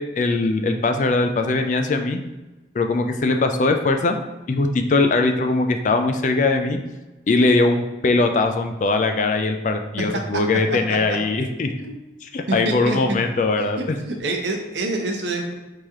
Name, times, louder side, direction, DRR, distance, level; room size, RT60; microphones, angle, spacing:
voice 1, 0.0-2.2 2.7-4.2 4.5-6.8 7.3-11.7 12.2-14.0, left 3 dB, 40° left, 6 dB, 0.3 m, -21 dB
voice 2, 12.5-13.0 13.6-15.5, right 2 dB, 80° right, 2 dB, 0.8 m, -27 dB
4.8 x 2.9 x 3.6 m, 1.1 s
head